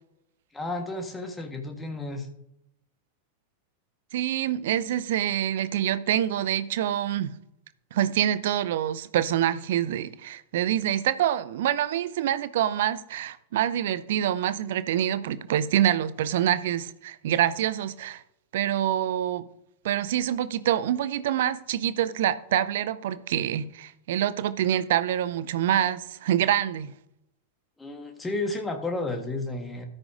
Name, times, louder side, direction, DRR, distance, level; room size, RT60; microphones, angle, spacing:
voice 1, 0.5-2.3 27.8-29.8, left 2 dB, 10° left, 1.3 m, -32 dB
voice 2, 4.1-7.3 7.9-18.2 18.5-19.4 19.8-26.9, right 11 dB, 55° right, 0.5 m, -26 dB
13.0 x 9.6 x 2.6 m
figure-of-eight pair, 90°, 0 cm